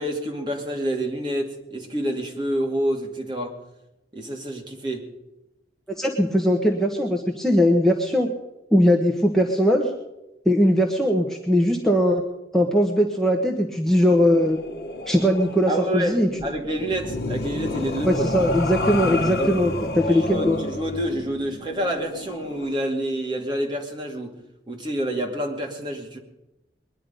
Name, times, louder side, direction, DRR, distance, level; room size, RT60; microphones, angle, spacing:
voice 1, 0.0-3.6 4.1-5.1 15.7-18.2 19.4-19.6 20.1-24.4 24.7-26.2, right 1 dB, 25° right, 1 dB, 2.2 m, -28 dB
voice 2, 6.0-8.3 8.7-9.9 10.4-12.2 12.5-14.6 15.1-16.3 18.0-20.6, equal, ahead, 1 dB, 1.2 m, -20 dB
sound 1, 13.9-22.8, left 2 dB, 60° left, 1.1 m, -31 dB
21.5 x 11.0 x 5.3 m, 0.95 s
head